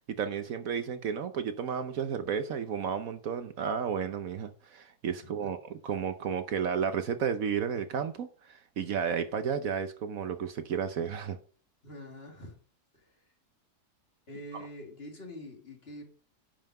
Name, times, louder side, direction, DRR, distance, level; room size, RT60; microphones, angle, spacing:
voice 1, 0.0-11.4 14.5-14.6, right 7 dB, 65° right, 1.1 m, -32 dB
voice 2, 11.8-12.6 12.9-13.3 14.3-16.0, left 1 dB, 35° left, 2.4 m, -45 dB
10.5 x 5.6 x 5.3 m
omnidirectional pair, 1.7 m